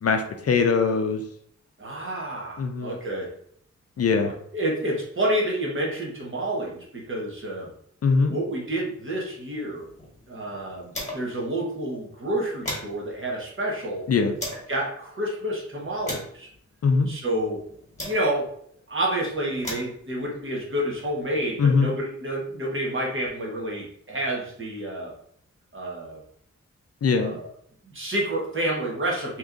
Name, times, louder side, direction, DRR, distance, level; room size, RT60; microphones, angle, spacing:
voice 1, 0.0-1.2 2.6-2.9 4.0-4.3 8.0-8.3 14.1-14.3 16.8-17.1 21.6-21.9 27.0-27.4, left 5 dB, 55° left, 5 dB, 0.4 m, -21 dB
voice 2, 1.8-3.3 4.2-7.7 8.3-9.8 10.3-14.1 14.7-16.5 17.1-17.6 18.0-18.5 18.9-25.1 25.7-26.2 27.2-27.5 27.8-29.4, right 1 dB, 45° right, -2 dB, 1.1 m, -29 dB
sound 1, 9.6-11.5 11.8-11.9 12.2-14.7 15.4-18.6 19.3-21.5, left 1 dB, 25° left, 1.2 m, -39 dB
3.0 x 2.6 x 3.6 m, 0.66 s
wide cardioid pair, 140°, 29 cm